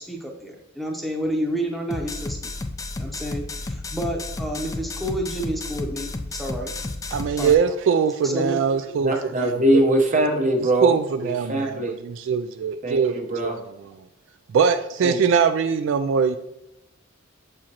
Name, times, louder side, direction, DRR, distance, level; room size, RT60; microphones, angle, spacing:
voice 1, 0.0-2.4 3.0-6.7 7.4-7.6 8.2-8.6, right 1 dB, ahead, 1 dB, 0.8 m, -29 dB
sound 1, 1.9-7.5, left 2 dB, 15° left, 0.3 m, -32 dB
voice 2, 7.1-9.8 10.8-13.6 14.5-16.4, right 6 dB, 65° right, 10 dB, 0.3 m, -22 dB
voice 3, 9.0-10.9 11.2-12.0 12.8-13.6 15.0-15.2, right 1 dB, 40° right, 3 dB, 0.9 m, -22 dB
7.0 x 4.9 x 2.9 m, 0.88 s
head